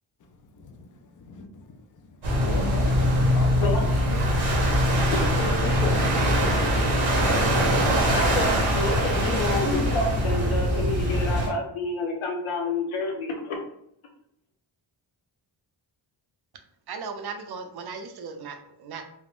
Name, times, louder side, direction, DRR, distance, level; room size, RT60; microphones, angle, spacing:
voice 1, 0.5-4.2 4.7-6.4, left 4 dB, 45° left, 5 dB, 0.4 m, -38 dB
sound 1, 2.2-11.5, equal, 90° right, 1.0 m, -22 dB
voice 2, 3.6-4.1 5.1-5.2 8.1-13.6, left 2 dB, 80° left, 2 dB, 0.8 m, -29 dB
voice 3, 16.9-19.0, right 5 dB, 55° right, 6 dB, 0.5 m, -37 dB
3.5 x 2.0 x 2.4 m, 0.72 s
wide cardioid pair, 120°, 48 cm